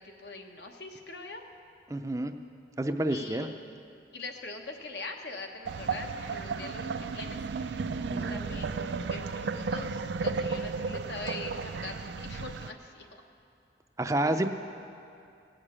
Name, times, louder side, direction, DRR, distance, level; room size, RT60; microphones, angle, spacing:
voice 1, 0.0-1.4 3.1-3.7 4.1-7.8 8.1-13.2 14.3-14.5, left 3 dB, 75° left, 3 dB, 1.3 m, -43 dB
voice 2, 1.9-2.3 2.8-3.5 7.9-8.4 14.0-14.5, right 1 dB, 20° right, 7 dB, 0.5 m, -29 dB
sound 1, 5.7-12.7, right 4 dB, 80° right, 0.4 m, -34 dB
17.5 x 6.7 x 8.7 m, 2.5 s
head